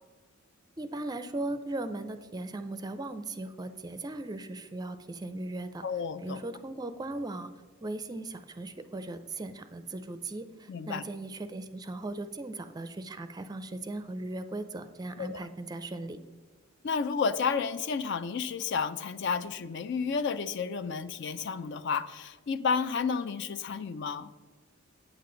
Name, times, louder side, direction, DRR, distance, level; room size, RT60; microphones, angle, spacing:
voice 1, 0.8-5.9 6.2-7.5 7.8-16.2, right 2 dB, 20° right, 10 dB, 0.4 m, -38 dB
voice 2, 5.8-6.4 10.7-11.0 15.2-15.5 16.8-24.3, left 5 dB, 55° left, 13 dB, 0.4 m, -31 dB
8.8 x 8.6 x 3.8 m, 1.3 s
head